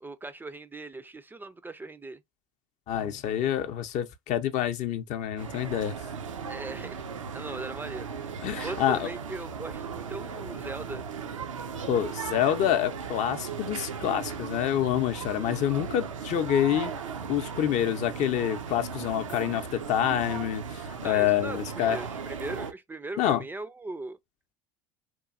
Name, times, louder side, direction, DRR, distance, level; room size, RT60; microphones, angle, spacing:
voice 1, 0.0-2.2 6.5-7.0 7.3-8.1 8.6-11.0 21.0-24.2, right 2 dB, 10° right, 0.3 m, -39 dB
voice 2, 2.9-5.9 8.4-9.1 11.9-16.9 17.3-22.0 23.2-23.4, left 10 dB, 50° left, 0.5 m, -27 dB
sound 1, 5.4-22.7, right 6 dB, 90° right, 0.4 m, -37 dB
3.0 x 2.2 x 2.4 m
hypercardioid pair, 70°, 16 cm